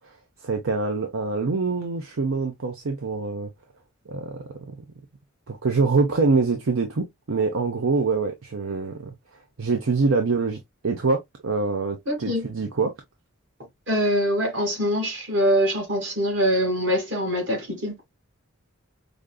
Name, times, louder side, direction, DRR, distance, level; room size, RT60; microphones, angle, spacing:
voice 1, 0.4-3.5 4.1-4.4 5.5-9.1 9.6-10.6 10.8-12.9, right 4 dB, 75° right, 0.7 m, -24 dB
voice 2, 12.1-12.4 13.9-17.9, equal, 60° right, 1.9 m, -23 dB
5.1 x 2.5 x 2.2 m
head